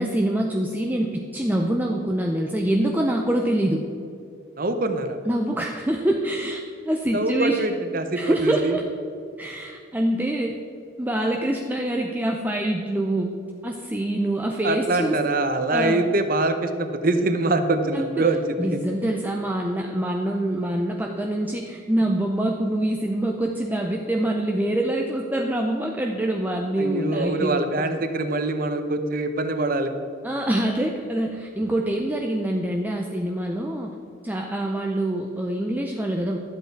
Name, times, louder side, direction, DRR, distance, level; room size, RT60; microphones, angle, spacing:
voice 1, 0.0-3.8 5.3-7.7 8.2-8.8 9.4-10.6 11.0-13.3 13.6-15.2 15.7-16.0 17.9-18.3 18.6-27.6 30.2-33.9 34.2-36.4, right 1 dB, 10° right, 1 dB, 0.5 m, -25 dB
voice 2, 4.6-5.2 7.1-8.8 14.6-18.4 18.7-18.8 26.8-29.9, right 2 dB, 45° right, 8 dB, 0.8 m, -24 dB
12.5 x 8.1 x 4.6 m, 2.5 s
head